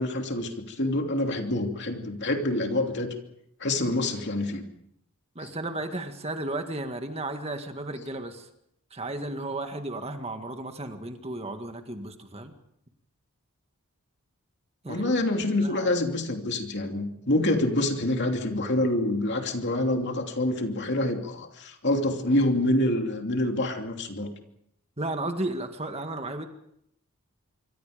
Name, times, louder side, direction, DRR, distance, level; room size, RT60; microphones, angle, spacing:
voice 1, 0.0-3.1 3.6-4.7 5.4-5.5 14.9-24.3, left 1 dB, 50° left, 4 dB, 2.9 m, -26 dB
voice 2, 5.4-8.5 8.9-12.5 14.8-15.1 15.6-15.9 25.0-26.5, right 2 dB, 25° right, 6 dB, 1.9 m, -34 dB
26.0 x 24.5 x 5.2 m, 0.75 s
head